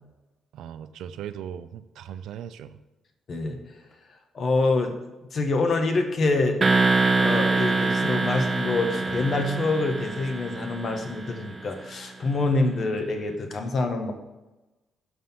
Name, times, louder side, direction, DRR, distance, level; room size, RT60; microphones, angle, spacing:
voice 1, 0.5-2.8, right 9 dB, 80° right, 11 dB, 0.4 m, -38 dB
voice 2, 3.3-3.8 4.3-4.9 5.3-6.6 7.2-14.1, left 3 dB, 50° left, 6 dB, 1.2 m, -26 dB
sound 1, 6.6-11.5, right 3 dB, 30° right, 0.8 m, -25 dB
6.4 x 5.9 x 5.6 m, 1.1 s
cardioid pair, 90°, 0 cm